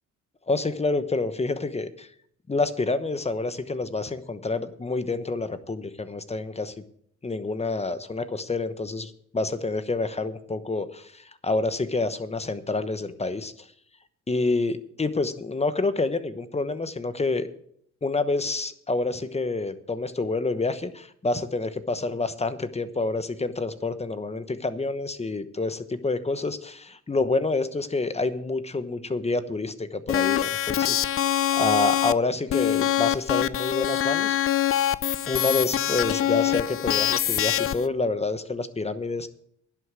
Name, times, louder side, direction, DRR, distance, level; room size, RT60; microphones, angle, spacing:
voice 1, 0.5-2.1 2.5-6.7 7.2-13.7 14.3-17.5 18.0-34.4 35.3-39.3, left 3 dB, 20° left, 12 dB, 1.0 m, -28 dB
sound 1, 30.1-32.1 32.5-37.9, left 11 dB, 45° left, 0.5 m, -24 dB
11.0 x 8.2 x 7.5 m, 0.65 s
cardioid pair, 90°, 30 cm